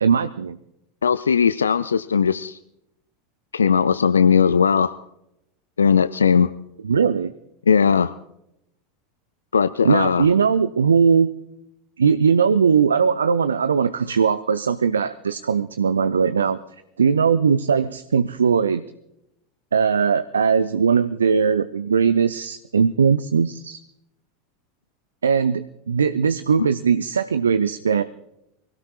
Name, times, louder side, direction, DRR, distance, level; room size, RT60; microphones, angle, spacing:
voice 1, 0.0-0.6 6.8-7.3 9.8-11.3 12.0-16.6 17.0-18.8 19.7-23.8 25.2-28.0, right 6 dB, 75° right, 13 dB, 0.5 m, -19 dB
voice 2, 1.0-2.6 3.5-5.0 5.8-6.5 7.7-8.1 9.5-10.3 26.6-26.7, left 6 dB, 75° left, 13 dB, 0.4 m, -18 dB
24.0 x 17.0 x 2.4 m, 0.81 s
figure-of-eight pair, 80°, 0 cm